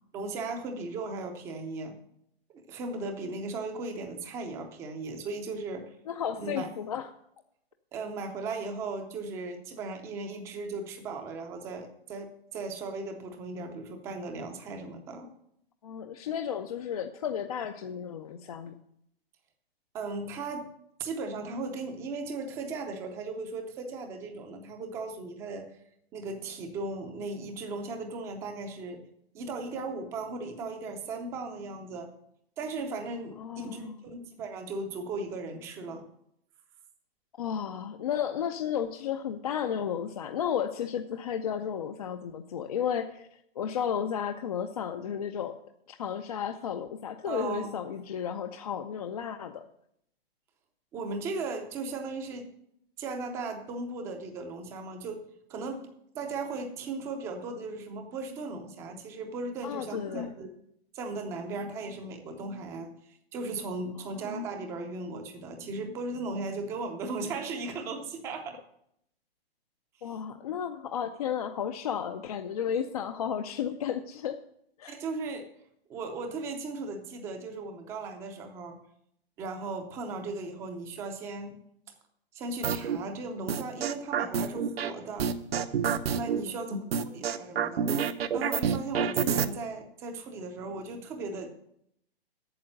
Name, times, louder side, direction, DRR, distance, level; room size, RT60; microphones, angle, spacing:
voice 1, 0.1-1.9 2.5-5.9 6.4-6.7 7.9-15.3 19.9-20.7 21.0-25.7 26.1-29.0 29.3-32.1 32.6-36.1 47.3-47.7 50.9-52.5 53.0-55.2 55.5-60.5 60.9-62.9 63.3-68.6 70.0-70.1 74.9-75.5 75.9-78.8 79.4-81.6 82.3-85.3 86.1-87.9 88.3-91.5, right 3 dB, 10° right, 6 dB, 0.5 m, -37 dB
voice 2, 6.1-7.1 15.8-18.8 33.4-34.0 37.4-45.6 45.9-49.6 59.6-60.3 70.0-74.4 74.8-74.9 86.4-86.5, left 8 dB, 40° left, 6 dB, 0.5 m, -33 dB
sound 1, 82.6-83.0 83.5-84.9 85.2-86.4 86.9-89.5, right 7 dB, 70° right, 0.8 m, -27 dB
8.7 x 6.8 x 7.7 m, 0.74 s
hypercardioid pair, 160°, 31 cm